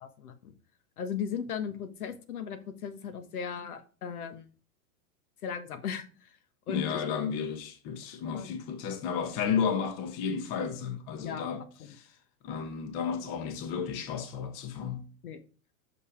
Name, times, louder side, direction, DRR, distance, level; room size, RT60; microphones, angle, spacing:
voice 1, 0.0-0.5 1.0-4.5 5.4-6.4 6.7-7.0 8.2-8.6 11.2-11.5 11.8-11.9 15.2-15.4, left 7 dB, 80° left, 1.5 m, -37 dB
voice 2, 6.7-12.1 12.4-15.1, left 6 dB, 35° left, 1.2 m, -33 dB
6.6 x 5.4 x 5.1 m
supercardioid pair, 140°, 43 cm